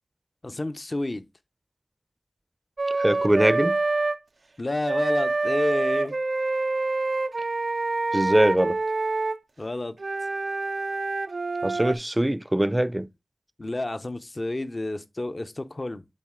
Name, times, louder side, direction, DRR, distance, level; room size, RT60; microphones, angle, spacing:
voice 1, 0.4-1.2 4.6-6.2 9.6-10.0 13.6-16.0, left 2 dB, 45° left, 0.7 m, -30 dB
Wind instrument woodwind instrument, 2.8-4.2 4.8-9.4 10.0-11.9, right 3 dB, 70° right, 0.4 m, -26 dB
voice 2, 3.0-3.8 8.1-8.8 11.6-13.1, right 1 dB, 20° right, 0.5 m, -22 dB
7.5 x 4.0 x 3.7 m
cardioid pair, 40°, 0 cm